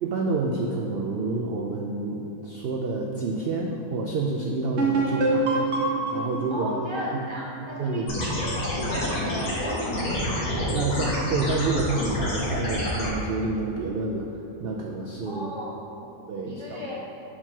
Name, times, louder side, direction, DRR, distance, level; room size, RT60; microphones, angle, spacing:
voice 1, 0.0-5.5 6.1-6.7 7.1-7.2 7.8-8.2 10.7-15.6 16.3-16.8, right 3 dB, 80° right, 0 dB, 0.5 m, -28 dB
sound 1, 4.8-8.4, right 2 dB, 50° right, 1.2 m, -26 dB
voice 2, 6.5-10.5 15.2-15.8 16.5-17.0, left 1 dB, 35° left, -5 dB, 0.4 m, -36 dB
sound 2, 8.1-13.1, left 1 dB, 80° left, 1.8 m, -28 dB
5.0 x 4.4 x 5.8 m, 2.8 s
omnidirectional pair, 1.6 m